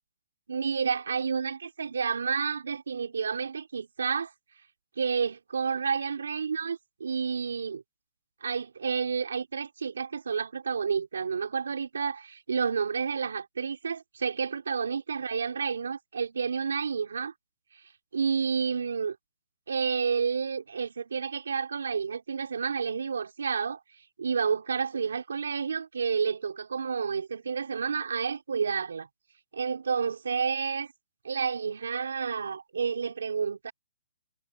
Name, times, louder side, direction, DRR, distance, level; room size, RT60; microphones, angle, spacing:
voice 1, 0.5-4.3 5.0-7.8 8.4-17.3 17.7-17.8 18.1-19.2 19.7-23.8 24.2-29.1 29.5-30.9 31.2-33.7, right 6 dB, 85° right, 4.3 m, -30 dB
hypercardioid pair, 170°, 0 cm